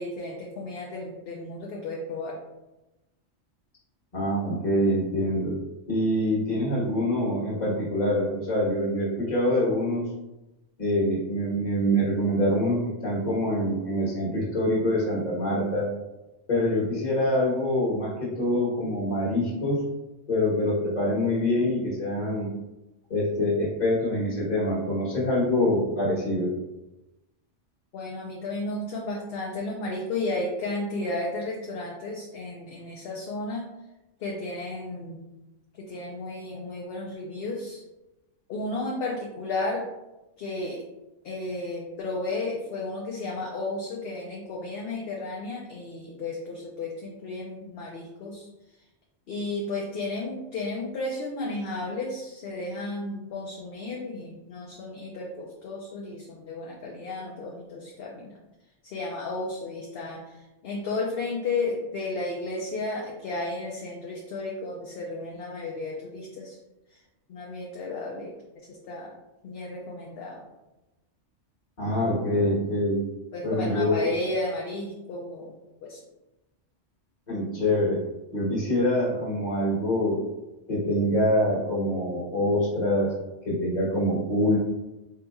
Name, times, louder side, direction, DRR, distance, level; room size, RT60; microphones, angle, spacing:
voice 1, 0.0-2.4 27.9-33.7 34.2-35.2 35.8-37.8 38.5-39.9 40.4-40.8 41.2-48.5 49.3-58.4 58.8-66.6 66.9-67.0 67.3-69.1 69.4-70.5 73.3-76.0, left 2 dB, 65° left, -2 dB, 0.7 m, -33 dB
voice 2, 4.1-5.6 5.9-10.0 10.8-15.9 16.5-19.8 20.3-22.5 23.1-26.5 71.8-73.0 73.4-73.9 77.3-78.0 78.3-80.2 80.7-83.1 83.4-84.6, left 1 dB, 40° left, -6 dB, 1.3 m, -25 dB
3.9 x 2.8 x 2.3 m, 1.0 s
omnidirectional pair, 1.2 m